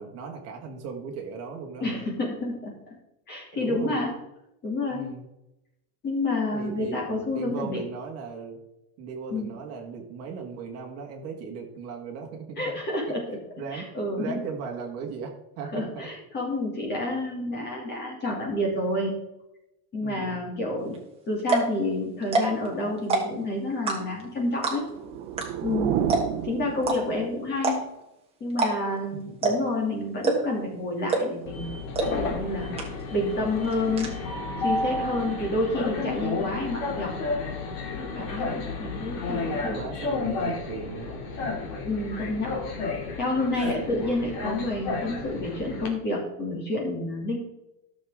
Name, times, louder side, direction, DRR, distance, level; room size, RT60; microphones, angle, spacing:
voice 1, 0.0-1.9 3.5-3.9 4.9-5.3 6.5-8.6 9.0-12.8 13.6-13.9 14.2-16.1 20.0-20.4 29.3-29.4 38.0-38.4 39.4-41.2 41.4-41.5, right 5 dB, 35° right, 1 dB, 1.8 m, -37 dB
voice 2, 1.8-2.7 3.3-4.1 4.6-5.1 6.0-7.8 9.3-9.5 12.6-13.4 13.7-14.4 15.7-19.1 19.9-21.0 21.3-24.8 25.6-26.0 26.4-27.8 28.4-31.8 32.2-32.7 33.1-34.2 34.6-37.2 38.0-39.9 41.8-42.6 43.2-47.4, left 2 dB, 20° left, -2 dB, 2.5 m, -29 dB
sound 1, 20.9-21.0 21.4-21.7 22.2-22.7 23.0-23.4 23.9-24.2 24.6-25.0 25.4-25.5 25.7-25.8 26.1-26.4 26.8-27.0 27.6-28.0 28.5-28.7 29.0-29.1 29.4-29.7 30.2-30.6 31.1-31.4 31.9-32.1 32.4-32.5 32.8-33.2 33.5-34.1, right 3 dB, 15° right, 1.4 m, -25 dB
sound 2, 24.8-27.5, right 10 dB, 55° right, 0.9 m, -30 dB
Train, 31.5-45.9, left 3 dB, 45° left, 2.2 m, -32 dB
13.5 x 6.8 x 3.6 m, 0.89 s
cardioid pair, 180°, 45 cm